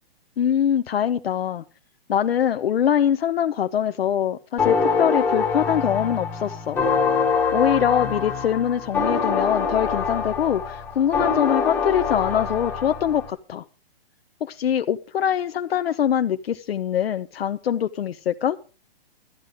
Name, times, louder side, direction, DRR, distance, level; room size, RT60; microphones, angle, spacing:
voice 1, 0.4-1.6 2.1-6.8 7.5-13.6 14.4-18.6, left 9 dB, 70° left, 0.8 m, -23 dB
sound 1, 4.6-13.3, left 5 dB, 5° left, 1.0 m, -24 dB
13.0 x 9.8 x 5.0 m
hypercardioid pair, 165°, 31 cm